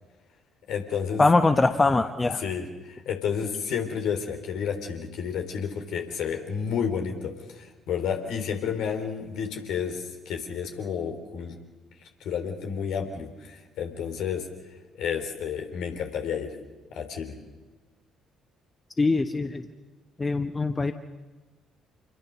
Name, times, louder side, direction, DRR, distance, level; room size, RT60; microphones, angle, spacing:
voice 1, 0.7-1.2 2.4-11.6 12.2-14.5 14.9-16.6 16.9-17.3, left 7 dB, 60° left, 4 dB, 3.7 m, -31 dB
voice 2, 1.2-2.4 19.0-19.6 20.2-20.9, left 3 dB, 25° left, 8 dB, 1.3 m, -22 dB
28.0 x 21.5 x 6.5 m, 1.2 s
figure-of-eight pair, 45°, 0 cm